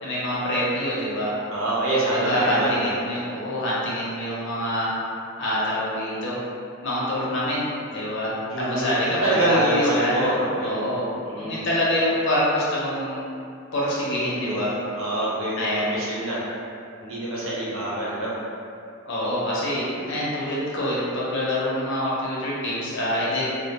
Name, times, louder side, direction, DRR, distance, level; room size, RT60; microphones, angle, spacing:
voice 1, 0.0-1.3 2.1-4.9 5.4-6.4 6.8-11.1 11.4-13.2 13.7-14.7 15.6-15.9 19.1-23.4, left 1 dB, 55° left, -7 dB, 0.6 m, -26 dB
voice 2, 1.5-2.9 8.5-10.8 11.3-11.6 14.4-16.4 17.0-18.4 19.8-20.1, right 1 dB, 65° right, -8 dB, 0.7 m, -26 dB
2.1 x 2.1 x 2.8 m, 2.5 s
head